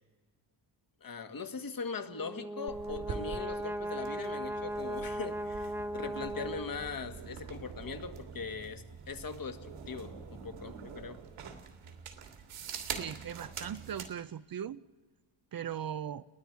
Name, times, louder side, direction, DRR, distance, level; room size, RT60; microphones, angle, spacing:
voice 1, 1.0-11.2, left 5 dB, 45° left, 1.8 m, -41 dB
Brass instrument, 2.1-7.1, right 1 dB, 5° right, 0.7 m, -38 dB
sound 1, 2.7-14.1, right 6 dB, 80° right, 2.9 m, -45 dB
voice 2, 12.9-14.8 15.5-16.2, right 9 dB, 45° right, 0.7 m, -39 dB
29.5 x 21.5 x 4.7 m
cardioid pair, 80°, 49 cm